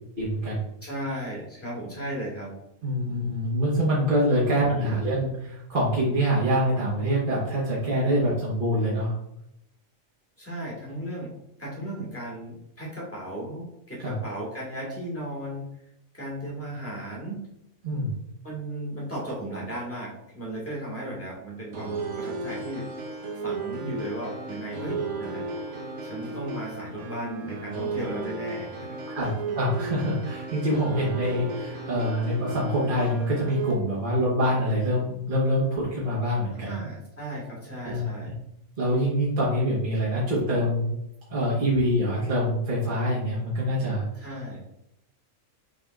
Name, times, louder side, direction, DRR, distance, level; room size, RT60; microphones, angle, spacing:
voice 1, 0.2-0.6 2.8-9.1 14.0-14.1 17.8-18.1 29.1-36.7 37.8-38.0 38.8-40.9 41.3-44.3, equal, 45° right, -8 dB, 1.3 m, -25 dB
voice 2, 0.8-2.5 4.4-5.0 10.4-11.3 11.6-15.7 16.1-17.4 18.4-22.9 23.4-25.5 26.0-29.3 36.5-38.3 44.2-44.6, right 1 dB, 10° left, -5 dB, 1.5 m, -35 dB
sound 1, 21.7-33.7, right 3 dB, 65° right, 1.1 m, -34 dB
6.3 x 3.5 x 2.4 m, 0.81 s
omnidirectional pair, 1.3 m